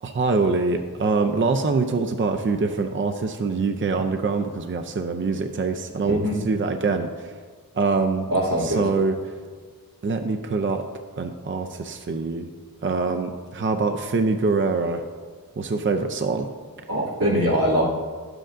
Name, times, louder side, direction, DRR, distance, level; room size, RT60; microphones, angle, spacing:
voice 1, 0.0-7.3 7.7-8.3 8.6-9.1 10.0-10.8 11.2-12.5 12.8-15.0 15.6-16.5, right 4 dB, 35° right, 6 dB, 0.4 m, -24 dB
voice 2, 6.0-6.4 8.3-8.8 16.9-17.8, equal, 85° right, -8 dB, 2.3 m, -22 dB
10.5 x 7.7 x 2.5 m, 1.6 s
wide cardioid pair, 60°, 35 cm